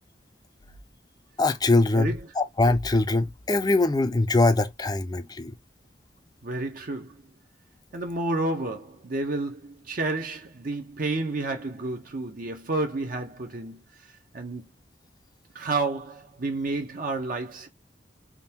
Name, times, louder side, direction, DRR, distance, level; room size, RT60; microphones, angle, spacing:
voice 1, 1.4-5.5, left 2 dB, 20° left, 0.5 m, -22 dB
voice 2, 1.9-2.3 6.4-7.2 7.9-13.8 14.3-14.7 15.5-17.7, right 2 dB, 50° right, 0.7 m, -30 dB
3.6 x 2.3 x 2.8 m
head